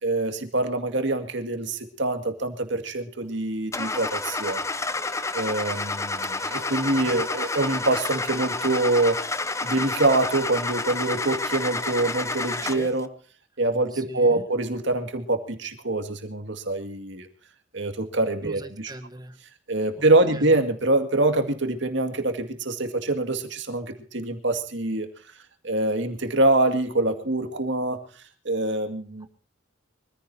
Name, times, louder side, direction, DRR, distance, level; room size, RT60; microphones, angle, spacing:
voice 1, 0.0-4.6 5.3-9.2 9.6-13.1 13.6-17.3 17.7-18.9 19.7-25.1 25.6-28.0 28.4-29.3, right 2 dB, 65° right, 2.2 m, -25 dB
Car / Engine starting, 3.7-13.0, left 3 dB, 15° left, 0.8 m, -29 dB
voice 2, 13.9-14.4 18.4-19.4 19.9-20.5 29.2-29.3, right 1 dB, 20° right, 1.3 m, -41 dB
24.5 x 15.0 x 2.8 m
head